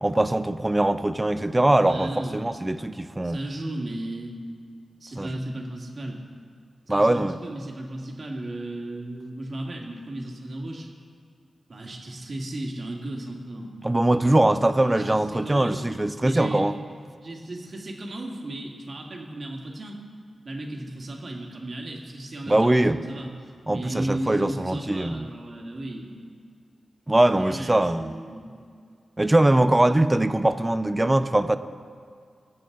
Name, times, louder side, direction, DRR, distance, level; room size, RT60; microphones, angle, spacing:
voice 1, 0.0-3.4 5.2-5.3 6.9-7.3 13.8-16.7 22.5-23.0 23.7-25.2 27.1-28.1 29.2-31.6, right 1 dB, 20° right, 12 dB, 0.5 m, -22 dB
voice 2, 1.8-2.5 3.2-4.3 5.0-6.2 6.9-10.9 11.7-13.8 14.8-15.8 16.2-16.7 17.2-20.0 20.4-23.3 23.7-26.1 27.3-28.5, right 1 dB, 50° right, 0 dB, 2.1 m, -35 dB
22.0 x 7.7 x 3.9 m, 2.2 s
wide cardioid pair, 85°, 0 cm